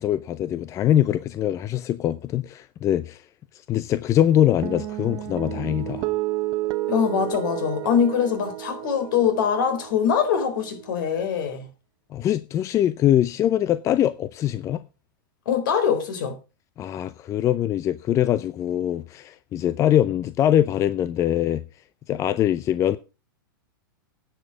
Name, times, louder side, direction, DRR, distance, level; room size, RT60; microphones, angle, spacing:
voice 1, 0.0-3.2 3.7-6.1 12.1-14.8 16.8-21.6 22.1-23.0, left 11 dB, 25° left, 0.5 m, -23 dB
sound 1, 4.6-11.2, right 17 dB, 40° right, 1.1 m, -31 dB
voice 2, 6.9-11.7 15.5-16.4, left 7 dB, 60° left, 4.0 m, -23 dB
10.0 x 6.9 x 6.3 m
hypercardioid pair, 120°, 12 cm